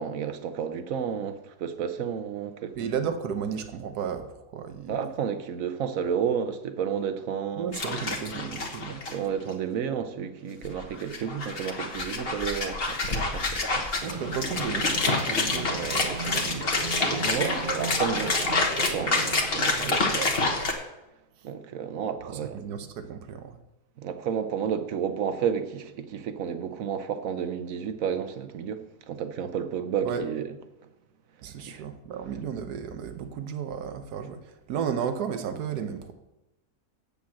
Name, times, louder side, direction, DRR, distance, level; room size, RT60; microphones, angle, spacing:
voice 1, 0.0-2.7 4.9-7.7 9.1-14.0 17.2-20.2 21.4-22.6 24.0-30.5 31.7-31.9, right 7 dB, 65° right, 1.1 m, -31 dB
voice 2, 2.8-4.3 4.5-5.1 7.6-9.0 14.0-16.7 19.7-20.7 22.2-23.6 30.0-30.2 31.4-36.1, right 7 dB, 85° right, 1.4 m, -34 dB
sound 1, 7.7-9.1 9.5-9.6 10.6-20.7, left 3 dB, 40° left, 1.3 m, -28 dB
sound 2, 14.0-19.5, right 4 dB, 45° right, 0.7 m, -36 dB
7.8 x 7.0 x 7.5 m
omnidirectional pair, 1.7 m